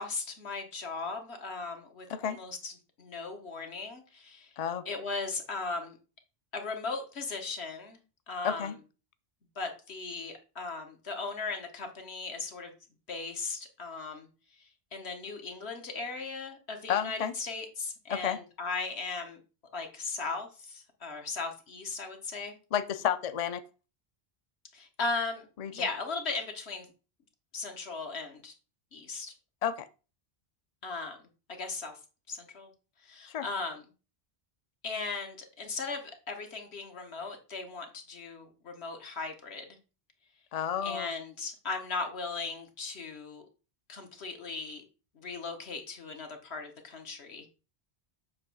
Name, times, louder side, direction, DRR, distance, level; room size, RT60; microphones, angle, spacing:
voice 1, 0.0-4.5 4.8-6.0 6.5-8.0 8.3-8.8 9.5-12.7 13.1-14.3 14.6-19.4 19.7-22.5 24.7-26.9 27.5-28.5 28.9-29.3 30.8-31.2 31.5-32.0 32.3-32.7 33.0-33.8 34.8-39.8 40.8-43.4 43.9-44.8 45.1-47.5, left 3 dB, 75° left, 4 dB, 1.5 m, -37 dB
voice 2, 16.9-17.3 18.1-18.4 22.7-23.6 25.6-25.7 29.6-29.9 33.3-33.5 40.5-41.1, left 9 dB, 50° left, 12 dB, 0.4 m, -31 dB
7.4 x 3.0 x 6.0 m, 0.34 s
omnidirectional pair, 1.1 m